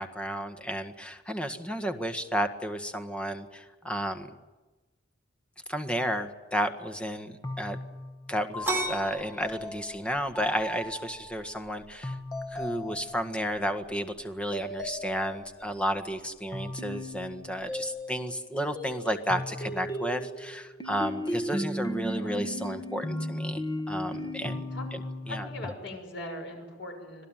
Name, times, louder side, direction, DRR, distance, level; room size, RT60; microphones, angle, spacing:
voice 1, 0.0-4.3 5.7-7.8 8.3-12.2 12.5-24.7 25.3-25.5, equal, 5° left, 7 dB, 1.7 m, -32 dB
sound 1, 7.4-11.3 12.0-13.5 14.5-15.7 16.5-18.4 18.8-25.7, left 1 dB, 20° left, 1.5 m, -36 dB
sound 2, 8.6-18.0, right 2 dB, 10° right, 4.0 m, -41 dB
voice 2, 22.1-22.4 24.7-24.9 25.3-27.3, left 1 dB, 70° left, 4 dB, 6.5 m, -40 dB
26.0 x 18.0 x 9.2 m, 1.2 s
head